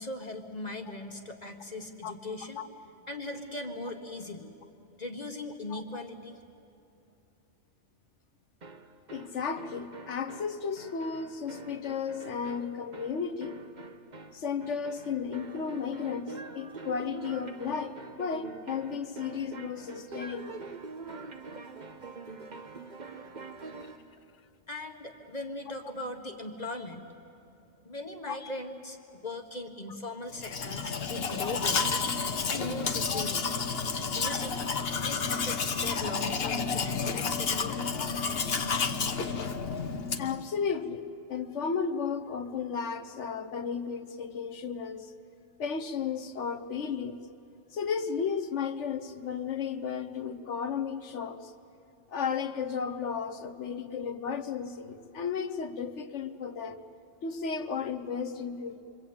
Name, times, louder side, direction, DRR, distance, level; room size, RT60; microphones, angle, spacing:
voice 1, 0.0-2.6 3.1-4.5 5.0-6.4 24.7-27.1 27.8-29.0 29.2-32.1 32.5-33.5 34.1-34.6 35.0-37.9, left 2 dB, 35° left, 4 dB, 1.5 m, -39 dB
voice 2, 5.7-6.0 9.1-13.6 14.3-20.6 28.3-28.4 31.4-31.5 33.1-33.2 37.9-38.1 40.2-45.1 45.6-47.2 47.7-51.5 52.1-56.8 57.2-58.8, left 6 dB, 75° left, 10 dB, 1.3 m, -34 dB
sound 1, 8.6-24.1, right 3 dB, 40° right, 1.1 m, -45 dB
Domestic sounds home sounds, 30.3-40.4, left 5 dB, 55° left, 1.2 m, -31 dB
27.5 x 24.5 x 8.7 m, 2.7 s
omnidirectional pair, 1.2 m